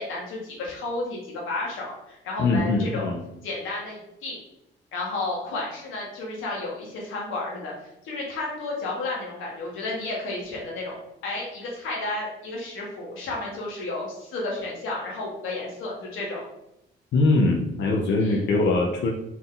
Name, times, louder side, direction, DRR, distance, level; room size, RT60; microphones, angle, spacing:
voice 1, 0.0-3.1 3.4-4.4 4.9-7.7 8.0-11.0 11.2-16.4 18.2-18.5, left 2 dB, 85° left, -3 dB, 1.5 m, -32 dB
voice 2, 2.4-3.2 17.1-19.1, left 2 dB, 65° left, 0 dB, 0.7 m, -22 dB
4.2 x 2.6 x 3.8 m, 0.84 s
cardioid pair, 90°, 20 cm